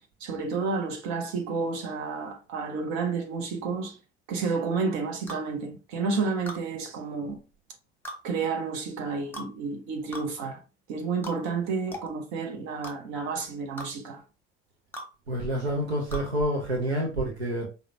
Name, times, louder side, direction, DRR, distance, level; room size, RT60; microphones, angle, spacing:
voice 1, 0.2-4.0 4.3-7.4 8.2-10.6 10.9-14.2, right 4 dB, 55° right, 0.9 m, -30 dB
sound 1, 5.3-5.5 6.5-6.6 8.0-8.2 9.3-9.5 10.1-10.3 11.2-11.4 11.9-12.1 12.8-13.0 13.8-13.9 14.9-15.1 16.1-16.3, equal, 5° left, 0.9 m, -38 dB
voice 2, 15.3-17.7, equal, 85° right, 0.6 m, -28 dB
4.8 x 2.1 x 2.7 m
figure-of-eight pair, 55°, 32 cm